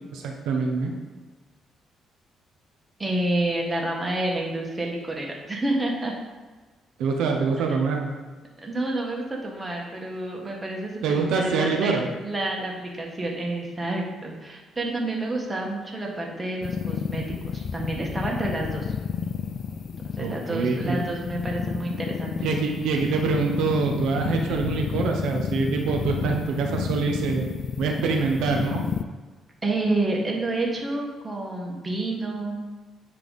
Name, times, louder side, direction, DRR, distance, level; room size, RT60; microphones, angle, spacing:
voice 1, 0.1-0.9 7.0-8.1 11.0-12.1 20.2-21.0 22.4-27.5 27.8-28.8, right 5 dB, 85° right, 2 dB, 0.7 m, -25 dB
voice 2, 3.0-6.1 8.6-18.9 20.0-22.4 26.8-27.0 29.6-32.7, right 2 dB, 25° right, -1 dB, 1.5 m, -29 dB
sound 1, 16.6-29.0, left 6 dB, 55° left, 0.3 m, -31 dB
9.8 x 3.4 x 4.1 m, 1.3 s
cardioid pair, 90°, 0 cm